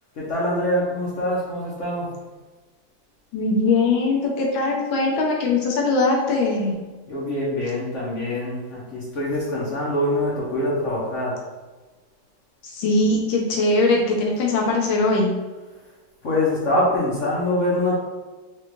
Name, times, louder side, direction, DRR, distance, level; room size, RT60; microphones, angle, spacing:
voice 1, 0.1-2.1 7.1-11.4 16.2-18.0, left 1 dB, 50° left, -6 dB, 1.0 m, -24 dB
voice 2, 3.3-6.8 12.6-15.3, left 3 dB, 80° left, -1 dB, 1.6 m, -21 dB
4.6 x 2.5 x 3.0 m, 1.2 s
omnidirectional pair, 2.1 m